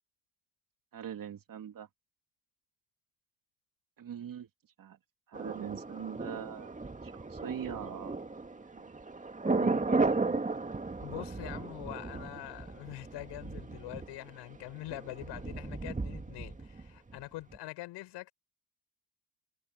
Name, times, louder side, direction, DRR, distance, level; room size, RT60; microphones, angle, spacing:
voice 1, 0.9-1.9 4.0-4.5 4.8-5.0 5.3-8.2 8.6-8.9 9.4-10.5, right 9 dB, 50° right, 3.2 m, -42 dB
Thunder, 5.3-17.2 17.5-17.6, right 3 dB, 15° right, 2.4 m, -35 dB
voice 2, 11.0-18.3, left 17 dB, 70° left, 7.7 m, -44 dB
hypercardioid pair, 60°, 42 cm